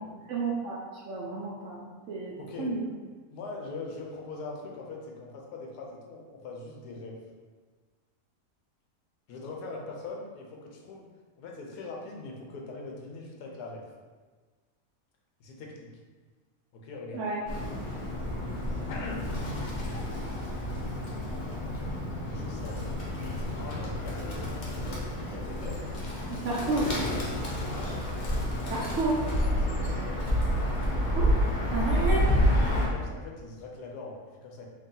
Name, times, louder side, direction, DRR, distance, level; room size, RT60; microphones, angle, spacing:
voice 1, 0.0-2.9 17.1-17.4 26.4-26.9 28.7-29.2 31.0-31.3 31.7-32.3, right 3 dB, 65° right, -3 dB, 0.8 m, -31 dB
voice 2, 2.4-2.7 3.3-7.2 9.3-11.1 11.4-13.8 15.4-15.9 16.7-17.2 18.9-19.2 22.3-22.8 23.5-25.0 25.3-25.8 27.7-28.0 29.4-30.1 32.7-34.6, left 3 dB, 85° left, -1 dB, 1.2 m, -41 dB
Bird, 17.5-32.9, equal, 55° left, 0.5 m, -29 dB
3.1 x 2.8 x 3.7 m, 1.4 s
omnidirectional pair, 1.7 m